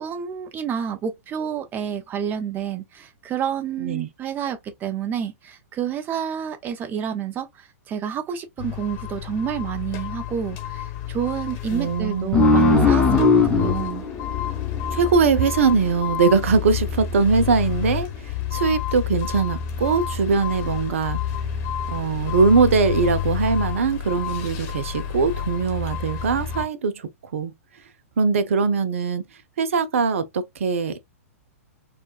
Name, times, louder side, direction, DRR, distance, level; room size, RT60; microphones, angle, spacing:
voice 1, 0.0-13.0 13.3-14.0, right 8 dB, 25° right, 0.8 m, -29 dB
sound 1, 8.6-26.7, left 9 dB, 35° left, 1.0 m, -29 dB
voice 2, 11.7-12.6 14.9-21.2 21.9-27.5 28.2-29.2 29.6-31.1, right 5 dB, 60° right, 0.6 m, -21 dB
sound 2, 12.3-15.5, left 3 dB, 5° left, 1.0 m, -18 dB
4.5 x 2.4 x 2.4 m
figure-of-eight pair, 105°, 8 cm